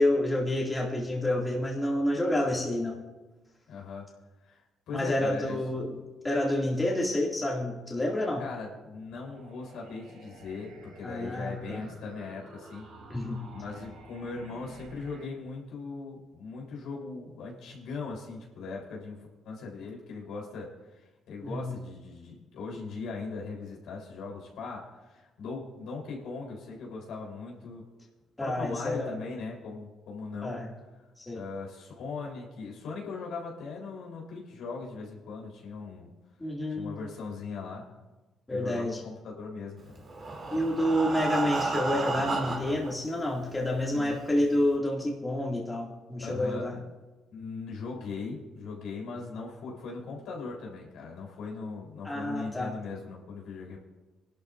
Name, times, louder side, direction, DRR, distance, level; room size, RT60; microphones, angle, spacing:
voice 1, 0.0-3.0 4.9-8.4 11.0-11.9 13.1-13.5 21.4-21.8 28.4-29.2 30.4-30.7 31.2-31.4 36.4-37.0 38.5-39.0 40.5-46.8 52.0-52.7, left 1 dB, 20° left, -3 dB, 2.3 m, -29 dB
voice 2, 3.7-4.1 4.4-5.6 8.4-12.9 13.5-19.2 19.4-27.8 28.4-30.6 31.3-36.1 36.7-37.8 38.5-40.0 43.9-44.4 46.2-46.8 47.3-53.8, left 4 dB, 80° left, -1 dB, 3.6 m, -39 dB
sound 1, 9.3-15.3, right 3 dB, 75° right, 5.6 m, -51 dB
Breathing, 40.0-42.9 43.7-43.8 44.1-44.2 44.7-44.8, right 3 dB, 45° right, 3.0 m, -31 dB
24.0 x 12.0 x 2.6 m, 1.1 s
cardioid pair, 90°, 0 cm